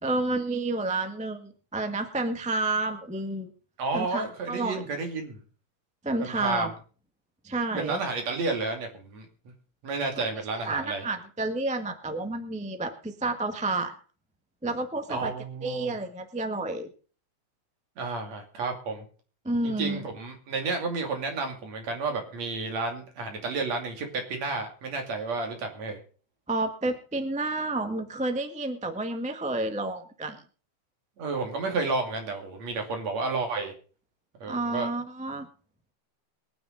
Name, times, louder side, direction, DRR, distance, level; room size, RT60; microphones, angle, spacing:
voice 1, 0.0-3.5 3.9-4.8 6.0-6.7 7.4-8.0 10.2-10.3 10.6-13.9 14.6-15.3 15.6-16.9 19.4-20.0 26.5-30.4 34.5-35.5, right 2 dB, 5° right, 6 dB, 0.6 m, -30 dB
voice 2, 3.8-5.4 6.2-6.7 7.7-9.3 9.8-11.1 15.1-15.9 18.0-19.0 19.6-26.0 31.2-33.7 34.4-34.9, right 3 dB, 60° right, 4 dB, 3.8 m, -31 dB
22.5 x 9.7 x 3.9 m, 0.39 s
omnidirectional pair, 3.4 m